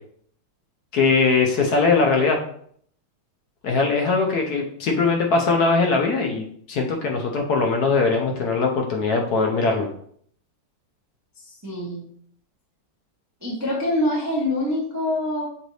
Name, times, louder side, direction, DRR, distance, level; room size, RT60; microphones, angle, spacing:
voice 1, 0.9-2.4 3.6-9.9, left 4 dB, 65° left, 2 dB, 1.1 m, -21 dB
voice 2, 11.4-12.1 13.4-15.4, left 1 dB, 15° right, -4 dB, 0.6 m, -25 dB
6.7 x 2.5 x 3.1 m, 0.62 s
omnidirectional pair, 2.0 m